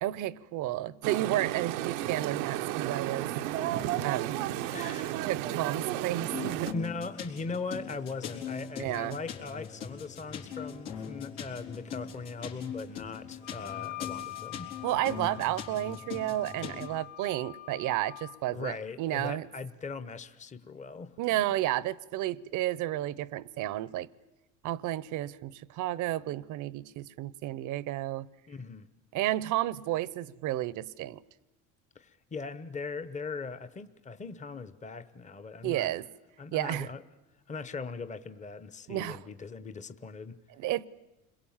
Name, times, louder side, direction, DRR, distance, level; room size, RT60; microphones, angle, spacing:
voice 1, 0.0-3.3 4.0-4.4 5.2-6.7 8.8-9.2 14.8-19.5 21.2-24.1 24.6-28.3 29.1-31.2 35.6-36.1 36.5-36.9 38.9-39.2 40.6-40.9, right 14 dB, 60° right, 0.8 m, -32 dB
sound 1, 1.0-6.7, right 13 dB, 90° right, 0.9 m, -33 dB
voice 2, 4.7-5.3 6.7-14.7 18.5-21.2 28.5-28.9 31.9-35.9 36.4-37.0 37.5-40.4, left 4 dB, 20° left, 0.9 m, -40 dB
sound 2, 6.3-16.9, left 7 dB, 85° left, 4.3 m, -41 dB
Wind instrument woodwind instrument, 13.4-18.4, left 19 dB, 55° left, 3.3 m, -44 dB
30.0 x 22.0 x 7.3 m
supercardioid pair, 100°, 35 cm